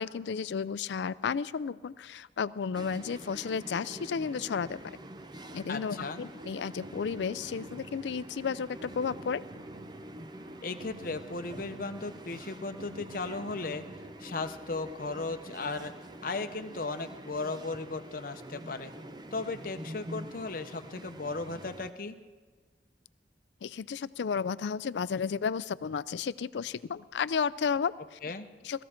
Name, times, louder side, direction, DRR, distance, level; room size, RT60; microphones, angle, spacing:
voice 1, 0.0-5.0 5.5-9.4 23.6-28.2 28.6-28.8, left 6 dB, 75° left, 18 dB, 0.4 m, -33 dB
sound 1, 2.7-21.9, right 1 dB, 25° right, 0.6 m, -46 dB
voice 2, 5.7-6.2 10.6-13.8 14.2-15.9 16.2-18.9 19.3-22.2 28.2-28.5, left 3 dB, 50° left, 8 dB, 0.7 m, -36 dB
sound 2, 6.5-14.2, right 1 dB, 80° right, 0.8 m, -51 dB
sound 3, 7.2-14.7, right 1 dB, 60° right, 4.5 m, -63 dB
19.0 x 14.5 x 4.4 m, 1.4 s
head